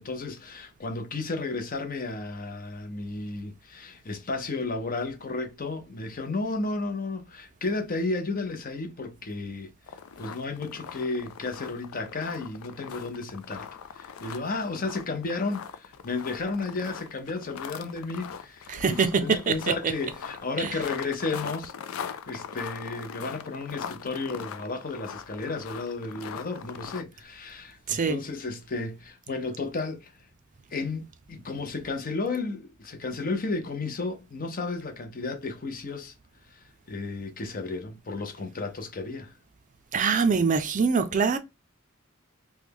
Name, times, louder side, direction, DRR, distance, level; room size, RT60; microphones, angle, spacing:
voice 1, 0.0-13.7 13.9-30.1 30.7-36.1 36.5-39.3, left 3 dB, 45° left, 0.7 m, -33 dB
sound 1, 9.9-27.0, left 7 dB, 85° left, 0.4 m, -41 dB
voice 2, 18.7-19.7 20.6-20.8 27.9-28.2 39.9-41.4, right 5 dB, 40° right, 0.4 m, -24 dB
3.2 x 2.2 x 3.4 m
head